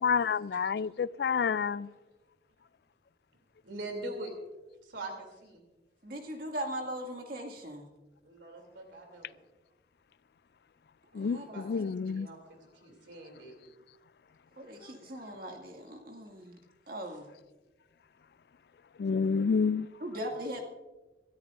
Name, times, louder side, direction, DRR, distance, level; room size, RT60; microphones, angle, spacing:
voice 1, 0.0-1.9 11.1-12.3 19.0-19.9, left 5 dB, 60° left, 0.3 m, -29 dB
voice 2, 3.6-4.3 4.8-5.6 8.2-9.3 11.1-11.7 12.0-13.5, right 2 dB, 85° right, 2.8 m, -43 dB
voice 3, 6.0-7.9 11.1-11.6 14.6-16.6 16.9-17.3 20.0-20.6, equal, 55° right, 2.1 m, -39 dB
24.0 x 13.5 x 2.5 m
head